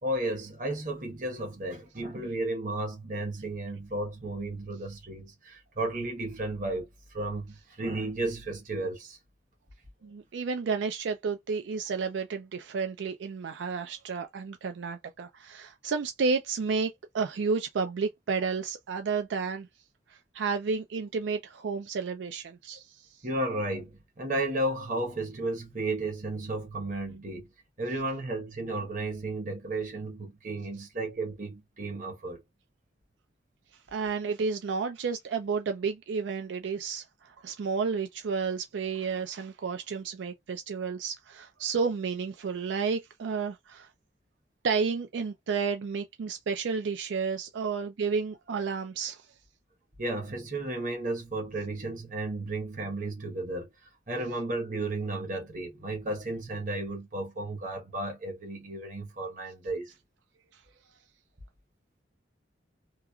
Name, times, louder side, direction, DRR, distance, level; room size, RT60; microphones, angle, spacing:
voice 1, 0.0-6.9 7.1-9.2 23.2-27.5 27.8-32.4 50.0-53.7 54.1-59.9, right 2 dB, 45° right, 1.1 m, -33 dB
voice 2, 10.0-19.7 20.1-23.1 33.9-43.9 44.6-49.3, right 5 dB, 80° right, 0.4 m, -31 dB
3.0 x 2.3 x 2.2 m
head